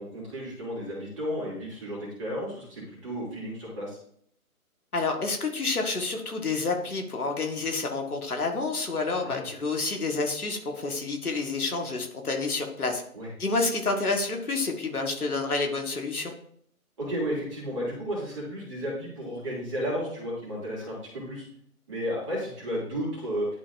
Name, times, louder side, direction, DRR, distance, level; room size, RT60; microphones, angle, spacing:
voice 1, 0.0-4.0 9.2-9.5 13.1-13.3 17.0-21.5 21.9-23.5, equal, 20° right, -6 dB, 2.6 m, -33 dB
voice 2, 4.9-13.0 13.4-16.3, left 3 dB, 75° left, 3 dB, 1.6 m, -29 dB
11.0 x 4.0 x 2.6 m, 0.65 s
figure-of-eight pair, 160°, 45 cm